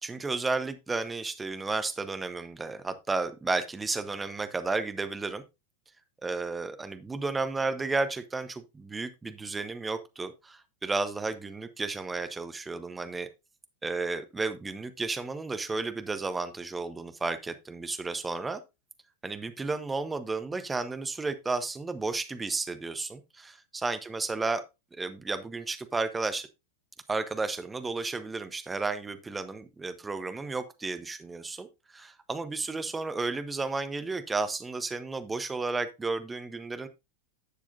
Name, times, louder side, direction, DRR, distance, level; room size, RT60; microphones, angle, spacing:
voice 1, 0.0-5.4 6.2-13.3 13.8-18.6 19.2-24.6 25.0-26.5 27.1-36.9, right 3 dB, 10° right, 0.8 m, -33 dB
11.0 x 7.4 x 2.5 m
figure-of-eight pair, 90°, 0 cm